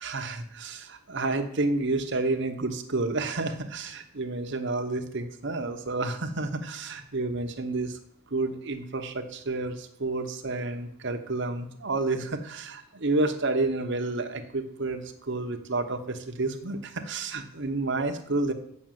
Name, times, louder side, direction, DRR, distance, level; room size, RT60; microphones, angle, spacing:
voice 1, 0.0-8.0 8.3-18.5, right 2 dB, 55° right, 6 dB, 1.0 m, -30 dB
7.5 x 6.1 x 7.6 m, 0.70 s
head